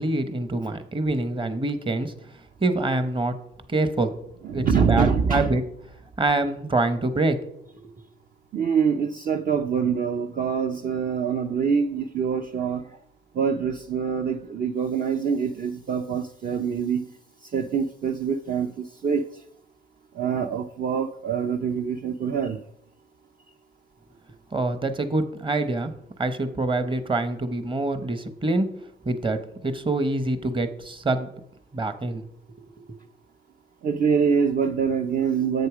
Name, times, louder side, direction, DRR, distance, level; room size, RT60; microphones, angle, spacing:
voice 1, 0.0-2.1 2.6-3.4 3.7-4.1 4.5-5.6 6.2-7.4 7.7-7.9 24.5-25.9 26.2-28.7 29.0-31.3 31.7-32.2 32.8-33.0, right 2 dB, 25° right, 10 dB, 1.0 m, -25 dB
voice 2, 4.4-5.6 8.5-13.0 13.3-17.1 17.4-19.4 20.1-22.6 33.8-35.7, right 6 dB, 45° right, 5 dB, 0.6 m, -25 dB
7.9 x 6.5 x 4.9 m, 0.70 s
cardioid pair, 90°, 20 cm